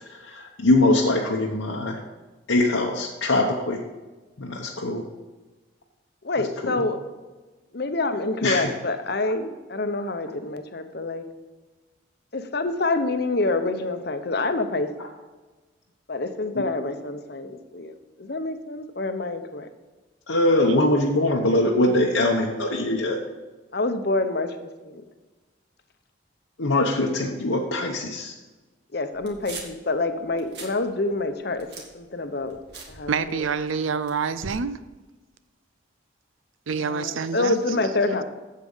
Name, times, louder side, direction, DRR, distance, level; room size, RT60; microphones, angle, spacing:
voice 1, 0.0-2.0 2.5-3.8 4.4-5.0 6.6-6.8 8.4-8.7 16.5-16.7 20.3-23.2 26.6-28.3, left 1 dB, 80° left, 1.0 m, -22 dB
voice 2, 6.2-7.0 7.7-11.2 12.3-14.9 16.1-19.7 23.7-25.0 28.9-31.7 31.9-32.6 32.9-33.5 36.8-38.2, left 2 dB, 55° left, 0.8 m, -27 dB
sound 1, 29.1-29.9 30.3-30.8 31.1-33.6 34.0-34.6, right 3 dB, 55° right, 1.8 m, -41 dB
voice 3, 33.1-34.8 36.7-37.6, right 5 dB, 85° right, 0.6 m, -27 dB
8.4 x 7.6 x 5.5 m
head